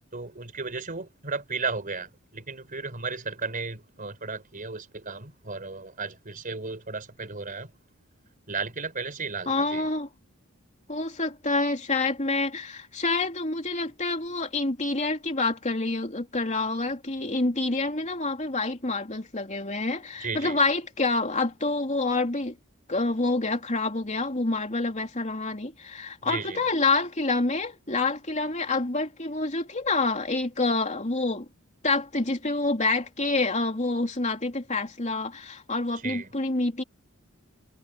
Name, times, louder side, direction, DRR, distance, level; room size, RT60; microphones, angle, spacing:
voice 1, 0.1-7.7 8.5-9.9 20.2-20.6 26.2-26.6 36.0-36.3, right 4 dB, 40° right, 4.2 m, -34 dB
voice 2, 9.5-10.1 10.9-22.6 22.9-31.5 31.8-36.8, left 3 dB, 35° left, 3.1 m, -27 dB
head